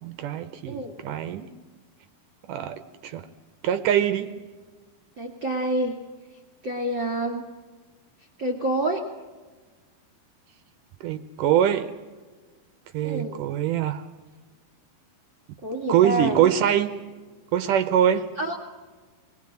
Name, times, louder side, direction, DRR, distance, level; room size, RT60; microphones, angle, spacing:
voice 1, 0.0-1.5 2.5-3.2 3.6-4.3 11.0-11.9 12.9-14.0 15.9-16.9 17.5-18.3, right 10 dB, 75° right, 11 dB, 2.0 m, -23 dB
voice 2, 0.7-1.0 5.2-6.0 6.6-7.5 8.4-9.1 13.0-13.4 15.6-16.4 18.4-18.6, right 1 dB, 35° right, 0 dB, 2.5 m, -27 dB
25.5 x 20.5 x 7.6 m, 1.4 s
omnidirectional pair, 4.6 m